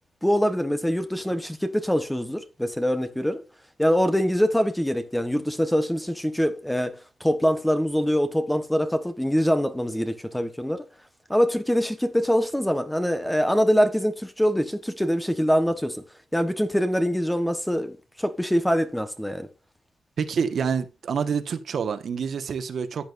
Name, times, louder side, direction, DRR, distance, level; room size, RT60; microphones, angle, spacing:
voice 1, 0.2-3.4 3.8-10.9 11.3-16.0 16.3-19.5, equal, 5° left, 1.3 m, -24 dB
voice 2, 20.2-23.1, right 6 dB, 55° right, 1.5 m, -27 dB
14.5 x 9.0 x 2.7 m
cardioid pair, 120°, 0 cm